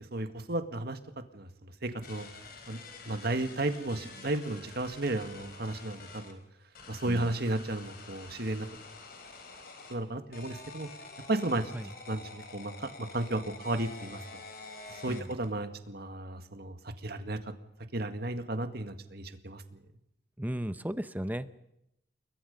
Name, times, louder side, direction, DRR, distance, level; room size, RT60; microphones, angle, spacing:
voice 1, 0.1-1.0 1.3-1.5 1.8-2.3 2.7-2.8 3.1-6.4 6.9-8.7 9.9-10.9 11.3-11.7 12.1-14.2 14.9-17.4 17.9-19.6, right 2 dB, 55° right, 8 dB, 1.9 m, -33 dB
sound 1, 2.0-6.3 6.7-10.0 10.3-15.5, left 3 dB, 50° left, 4.1 m, -48 dB
voice 2, 20.4-21.5, equal, 10° right, 13 dB, 0.7 m, -35 dB
29.5 x 22.0 x 5.4 m, 0.83 s
head